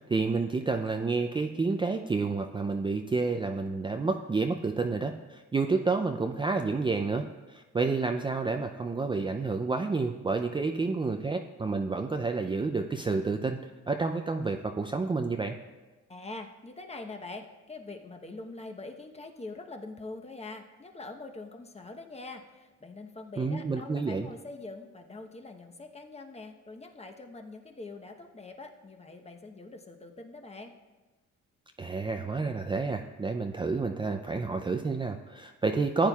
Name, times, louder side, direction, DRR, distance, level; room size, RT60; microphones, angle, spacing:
voice 1, 0.0-13.6 13.9-15.6 23.4-24.3 31.8-36.1, right 4 dB, 15° right, 4 dB, 0.4 m, -29 dB
voice 2, 16.1-30.7, left 3 dB, 20° left, 4 dB, 1.0 m, -44 dB
14.5 x 8.8 x 2.4 m, 1.2 s
cardioid pair, 90°, 30 cm